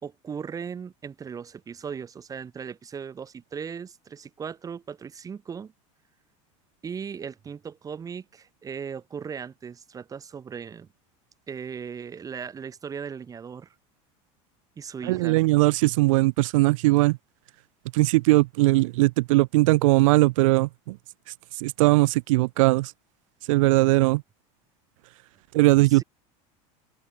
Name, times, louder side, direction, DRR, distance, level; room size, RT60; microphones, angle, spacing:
voice 1, 0.0-5.7 6.8-10.9 11.5-13.7 14.8-15.5 25.8-26.0, right 6 dB, 20° right, 2.9 m, -37 dB
voice 2, 15.0-17.2 17.9-21.0 21.6-22.9 23.5-24.2 25.5-26.0, right 21 dB, 80° right, 0.9 m, -20 dB
open air
supercardioid pair, 140°, 17 cm